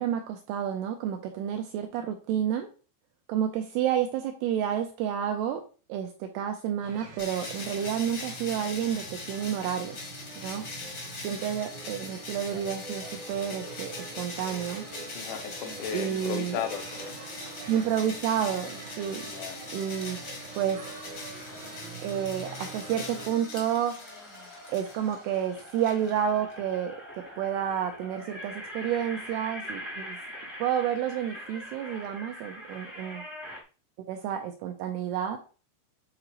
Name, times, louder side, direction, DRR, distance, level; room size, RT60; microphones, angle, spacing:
voice 1, 0.0-2.7 3.3-5.6 5.9-10.0 10.4-10.6 11.2-14.8 15.9-16.6 17.7-19.3 19.7-20.2 20.6-20.8 22.0-23.9 24.7-30.2 30.6-33.2 34.1-35.4, right 9 dB, 85° right, 2.4 m, -30 dB
sound 1, 6.8-23.3, right 4 dB, 65° right, 1.7 m, -45 dB
sound 2, 7.2-26.5, left 2 dB, 65° left, 1.2 m, -42 dB
voice 2, 15.2-17.2 19.2-19.6, left 8 dB, 85° left, 3.2 m, -35 dB
sound 3, 21.1-22.0 22.4-33.6, equal, 15° left, 0.6 m, -43 dB
8.6 x 3.8 x 3.0 m
omnidirectional pair, 5.1 m